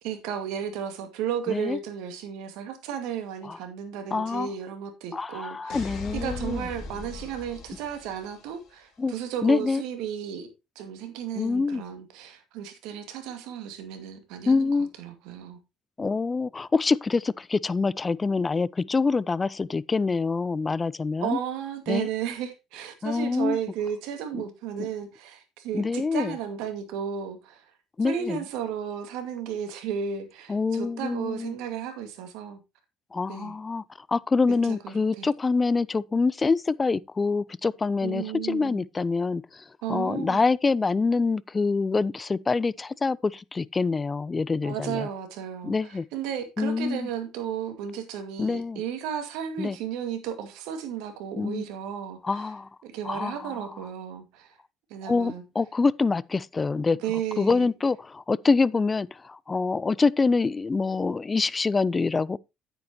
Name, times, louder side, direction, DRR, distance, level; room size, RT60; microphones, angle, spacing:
voice 1, 0.0-10.5 10.8-14.7 15.0-15.6 21.2-27.7 28.0-32.6 33.3-33.6 34.6-35.3 38.0-38.9 39.8-40.4 44.6-52.5 52.8-54.6 54.9-55.4 57.0-57.7, right 8 dB, 75° right, 2.2 m, -34 dB
voice 2, 1.5-1.8 3.5-3.6 4.1-4.5 5.1-6.7 9.0-9.1 9.4-9.8 11.4-11.8 14.5-14.9 16.0-21.4 21.9-22.1 23.0-23.6 24.3-24.4 24.8-24.9 25.7-26.3 28.0-28.4 30.5-31.5 33.1-33.8 34.1-39.4 39.9-45.1 45.6-46.1 46.6-47.1 48.4-48.8 49.6-49.8 51.4-51.6 52.2-52.7 53.0-53.5 55.1-57.0 57.4-62.4, left 4 dB, 25° left, 0.5 m, -25 dB
sound 1, 5.7-8.6, left 4 dB, 60° left, 2.7 m, -39 dB
9.6 x 9.2 x 3.0 m
hypercardioid pair, 65°, 0 cm